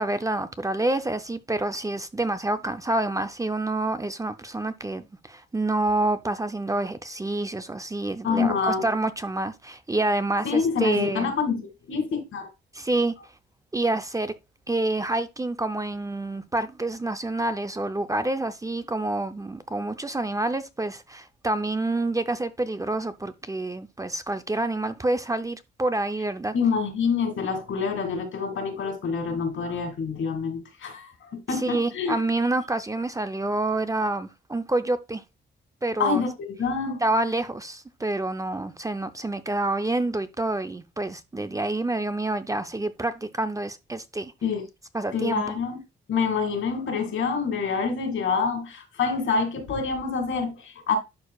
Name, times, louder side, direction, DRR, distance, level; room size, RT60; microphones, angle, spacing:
voice 1, 0.0-11.3 12.7-13.1 13.7-14.3 14.7-26.5 31.6-35.2 35.8-36.2 37.0-44.3 44.9-45.5, right 2 dB, 15° right, 0.6 m, -27 dB
voice 2, 8.2-8.8 10.4-12.5 26.5-32.2 36.0-37.0 44.4-44.6 45.1-45.8 46.1-51.0, left 5 dB, 75° left, 2.4 m, -26 dB
11.0 x 4.6 x 2.4 m
cardioid pair, 95°, 21 cm